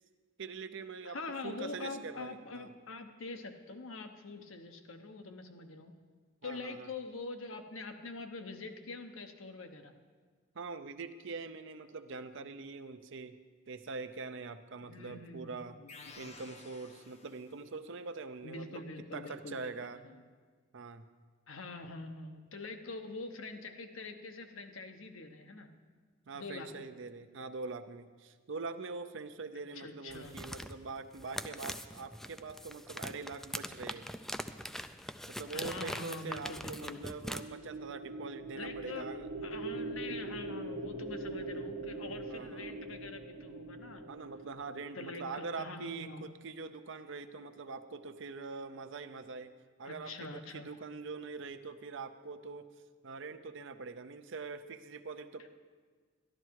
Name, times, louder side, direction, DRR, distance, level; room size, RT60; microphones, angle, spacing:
voice 1, 0.4-1.2 1.4-2.7 6.4-6.9 10.5-13.3 13.7-15.8 16.2-18.8 19.1-20.0 20.7-21.0 26.3-34.1 35.3-39.3 42.3-42.8 44.1-49.5 49.8-52.7 53.0-55.5, right 4 dB, 65° right, 10 dB, 0.6 m, -43 dB
voice 2, 1.0-5.9 6.4-9.9 14.8-16.2 18.4-20.2 21.5-25.7 26.3-26.9 29.7-30.4 35.5-37.0 38.6-39.1 39.4-44.0 44.9-46.3 49.8-50.7 55.4-55.5, left 3 dB, 75° left, 6 dB, 1.0 m, -45 dB
sound 1, 15.9-17.8, left 4 dB, 35° left, 0.7 m, -53 dB
sound 2, 30.1-37.4, equal, ahead, 0.3 m, -42 dB
sound 3, 37.3-45.5, right 2 dB, 85° right, 1.2 m, -42 dB
12.5 x 12.0 x 4.7 m, 1.5 s
head